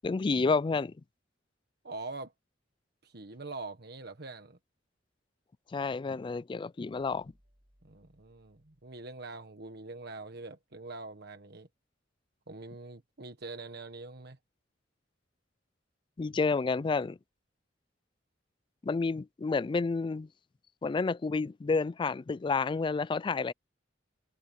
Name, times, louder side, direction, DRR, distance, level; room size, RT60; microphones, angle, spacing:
voice 1, 0.0-0.9 5.7-7.3 16.2-17.2 18.8-20.3 20.8-23.5, left 4 dB, 25° left, 0.3 m, -30 dB
voice 2, 1.8-2.3 3.0-4.6 7.8-11.7 12.5-14.4, right 3 dB, 60° right, 1.5 m, -44 dB
sound 1, 6.7-9.9, equal, 40° right, 7.6 m, -70 dB
head